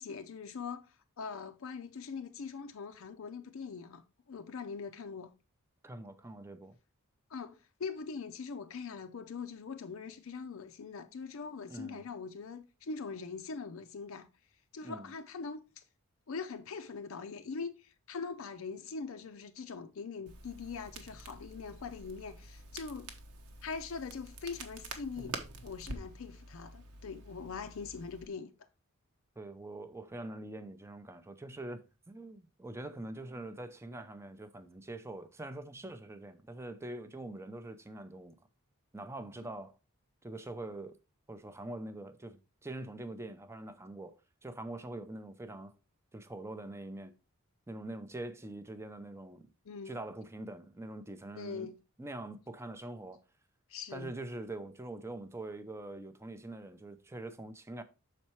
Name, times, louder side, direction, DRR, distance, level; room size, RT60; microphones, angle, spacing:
voice 1, 0.0-5.3 7.3-14.3 14.7-15.8 16.3-23.1 23.6-25.4 25.6-28.5 49.7-50.0 51.3-51.8 53.7-54.1, left 5 dB, 65° left, 0.5 m, -42 dB
voice 2, 5.8-6.8 11.7-12.0 14.8-15.1 29.4-38.3 38.9-39.8 40.2-41.0 41.3-45.7 46.1-47.1 47.7-49.5 49.9-51.7 52.0-53.2 53.9-57.8, right 2 dB, 10° right, 0.5 m, -44 dB
Crackle, 20.3-28.3, right 3 dB, 85° right, 1.1 m, -47 dB
6.4 x 4.3 x 4.4 m
head